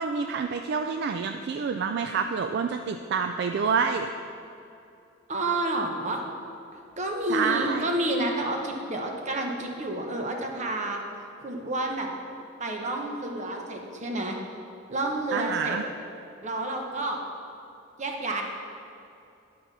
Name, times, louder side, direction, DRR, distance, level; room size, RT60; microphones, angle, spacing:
voice 1, 0.0-4.1 7.3-7.9 15.3-15.8, right 5 dB, 55° right, 6 dB, 0.3 m, -27 dB
voice 2, 5.3-6.2 7.0-11.0 11.4-12.1 12.6-14.4 14.9-15.8 16.4-17.2 18.0-18.4, right 1 dB, 35° right, 2 dB, 0.9 m, -29 dB
11.0 x 5.7 x 4.1 m, 2.6 s
head